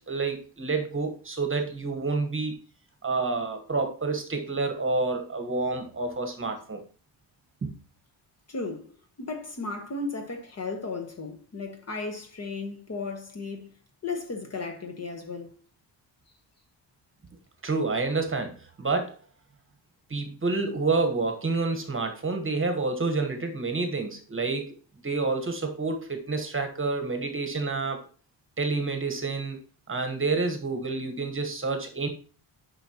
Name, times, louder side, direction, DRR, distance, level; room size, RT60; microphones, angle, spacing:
voice 1, 0.0-2.6 3.0-6.8 7.6-7.7 17.6-19.2 20.1-24.8 25.0-28.0 28.6-29.6 29.9-32.1, right 3 dB, 25° right, 1.1 m, -28 dB
voice 2, 8.5-8.9 9.2-13.7 14.0-15.6, left 3 dB, 35° left, 1.2 m, -35 dB
9.8 x 5.5 x 2.9 m
wide cardioid pair, 170°, 47 cm